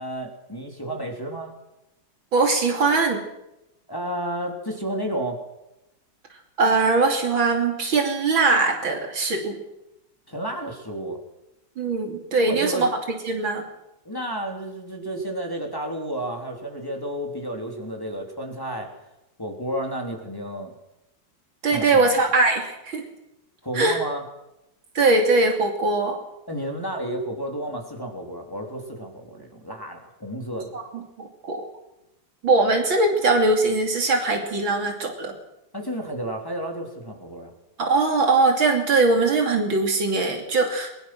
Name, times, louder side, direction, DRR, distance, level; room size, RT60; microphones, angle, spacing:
voice 1, 0.0-1.5 3.9-5.4 10.3-11.2 12.4-12.9 14.1-18.9 19.4-20.7 21.7-22.2 23.6-24.3 26.5-30.7 35.7-37.5, right 1 dB, 10° left, 0 dB, 3.5 m, -31 dB
voice 2, 2.3-3.2 6.6-9.6 11.8-12.9 13.2-13.6 21.6-23.0 23.7-24.0 25.0-26.2 30.7-31.6 32.4-35.3 37.8-40.9, right 3 dB, 90° right, 3 dB, 3.6 m, -21 dB
22.0 x 21.0 x 6.2 m, 0.91 s
omnidirectional pair, 2.1 m